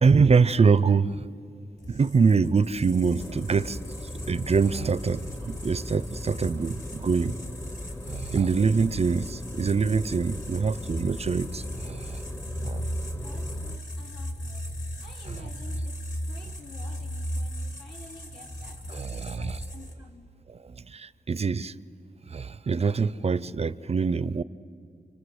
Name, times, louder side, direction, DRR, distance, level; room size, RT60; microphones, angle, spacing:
voice 1, 0.0-1.2 1.9-3.8 4.3-7.4 8.1-12.2 12.5-12.9 18.9-19.6 20.7-21.7 22.3-24.4, right 5 dB, 40° right, 0.5 m, -24 dB
sound 1, 1.8-20.1, equal, 55° left, 3.6 m, -37 dB
sound 2, 3.2-13.8, left 1 dB, 15° left, 0.9 m, -39 dB
voice 2, 13.1-20.3, left 3 dB, 80° left, 3.8 m, -51 dB
28.5 x 26.0 x 8.0 m
wide cardioid pair, 110°, 16 cm